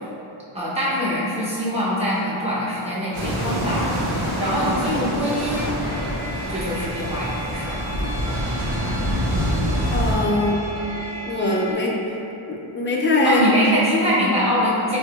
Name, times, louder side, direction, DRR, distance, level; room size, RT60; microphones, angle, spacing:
voice 1, 0.5-3.9 4.4-5.7 6.5-7.9 8.2-8.4 13.2-15.0, equal, 15° right, -9 dB, 0.7 m, -23 dB
sound 1, 3.1-10.2, equal, 80° right, 0.9 m, -25 dB
sound 2, 5.8-11.7, right 1 dB, 55° right, 0.7 m, -36 dB
voice 2, 9.9-10.6 11.3-11.9 12.5-13.4, left 2 dB, 25° left, -2 dB, 0.4 m, -21 dB
4.8 x 2.0 x 2.3 m, 3.0 s
wide cardioid pair, 110°, 50 cm